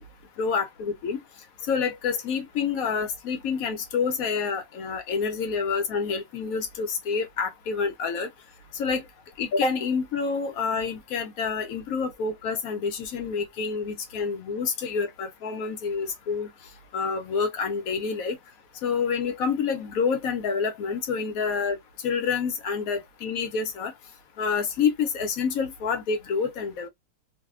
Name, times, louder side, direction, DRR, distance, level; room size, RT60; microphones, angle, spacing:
voice 1, 0.4-1.2 1.7-8.3 8.8-9.0 9.4-16.5 16.9-18.4 18.8-21.8 22.0-23.9 24.4-26.9, left 5 dB, 70° left, 0.9 m, -28 dB
2.7 x 2.3 x 2.3 m
omnidirectional pair, 1.9 m